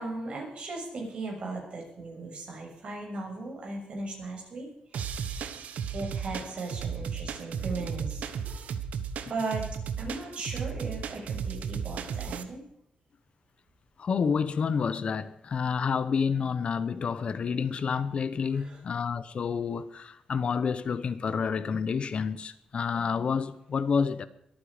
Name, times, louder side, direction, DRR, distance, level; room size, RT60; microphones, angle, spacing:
voice 1, 0.0-4.7 5.9-8.2 9.3-9.7 10.0-12.6 18.5-18.8, right 3 dB, 50° right, 6.7 m, -37 dB
sound 1, 4.9-12.4, right 7 dB, 90° right, 1.3 m, -35 dB
voice 2, 14.0-24.3, left 6 dB, 50° left, 0.9 m, -29 dB
23.0 x 9.3 x 5.0 m
wide cardioid pair, 125°, 2 cm